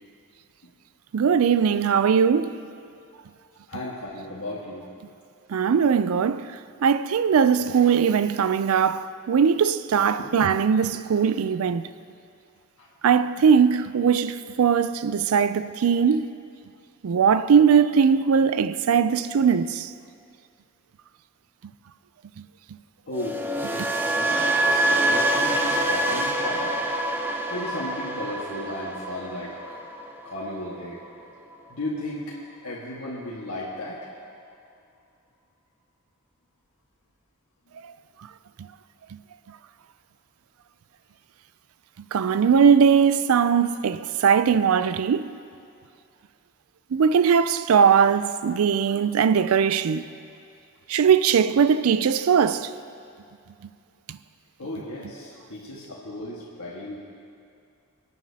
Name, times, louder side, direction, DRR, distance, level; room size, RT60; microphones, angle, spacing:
voice 1, 1.1-2.6 5.5-6.5 6.8-11.9 13.0-16.3 17.0-19.9 42.1-45.3 46.9-50.1 50.9-52.7, right 6 dB, 80° right, 0.4 m, -20 dB
voice 2, 3.7-4.8 10.2-10.3 12.8-12.9 23.1-23.4 23.7-26.8 27.5-29.8 30.2-31.0 31.7-32.4 32.6-34.0 54.6-57.0, left 1 dB, 80° left, 1.6 m, -35 dB
sound 1, 23.1-31.2 31.5-31.9, right 1 dB, 10° right, 0.6 m, -26 dB
27.5 x 9.2 x 2.8 m
head